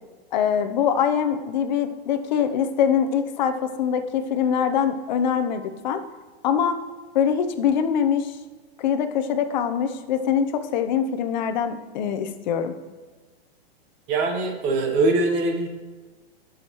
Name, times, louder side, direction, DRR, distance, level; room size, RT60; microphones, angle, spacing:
voice 1, 0.3-6.0 6.4-6.8 7.1-8.4 8.8-12.8, left 8 dB, 45° left, 8 dB, 0.7 m, -23 dB
voice 2, 14.1-15.7, right 2 dB, 25° right, 4 dB, 0.9 m, -22 dB
11.0 x 6.4 x 3.0 m, 1.3 s
supercardioid pair, 165°, 31 cm